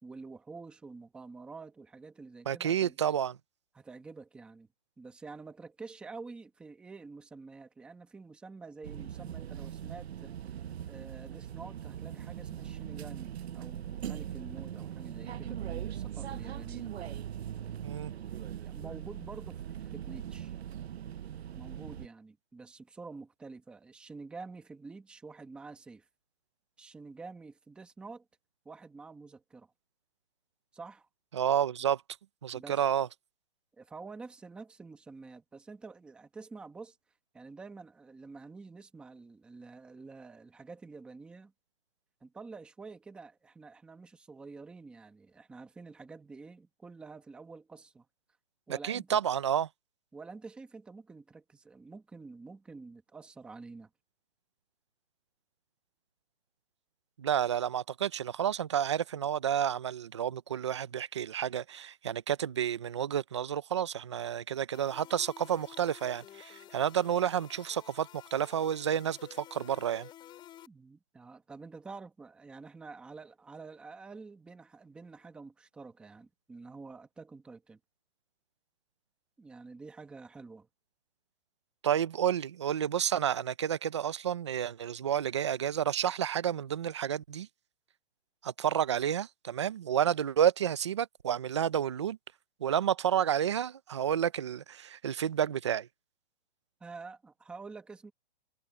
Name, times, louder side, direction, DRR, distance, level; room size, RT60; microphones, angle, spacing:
voice 1, 0.0-3.0 3.7-4.7 5.0-10.3 10.9-16.9 18.5-20.6 21.5-26.1 26.8-28.2 28.6-29.7 30.7-31.1 32.5-32.8 33.8-37.0 37.3-41.5 42.2-48.1 48.7-49.2 50.1-53.9 70.7-77.8 79.4-80.7 96.8-98.1, right 4 dB, 5° right, 1.0 m, -48 dB
voice 2, 2.5-3.4 17.8-18.1 31.3-32.0 32.4-33.1 48.7-49.7 57.2-70.1 81.8-87.5 88.4-92.2 92.6-95.9, right 9 dB, 30° right, 0.4 m, -30 dB
sound 1, 8.8-22.1, right 10 dB, 75° right, 0.9 m, -40 dB
sound 2, 64.7-70.7, left 12 dB, 15° left, 6.3 m, -52 dB
hypercardioid pair, 170°, 32 cm